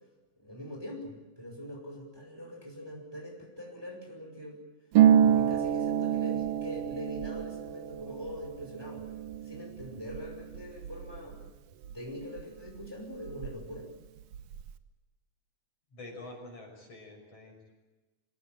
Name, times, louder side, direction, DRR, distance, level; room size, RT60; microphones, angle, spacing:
voice 1, 0.4-4.6 5.2-9.0 9.4-11.4 11.9-13.9, equal, 5° right, 0 dB, 5.4 m, -43 dB
Harp, 4.9-12.4 12.7-13.8 14.1-14.7, right 10 dB, 65° right, 2.0 m, -28 dB
voice 2, 15.9-17.7, left 2 dB, 50° left, 1 dB, 7.2 m, -47 dB
25.5 x 18.0 x 9.0 m, 1.1 s
omnidirectional pair, 3.5 m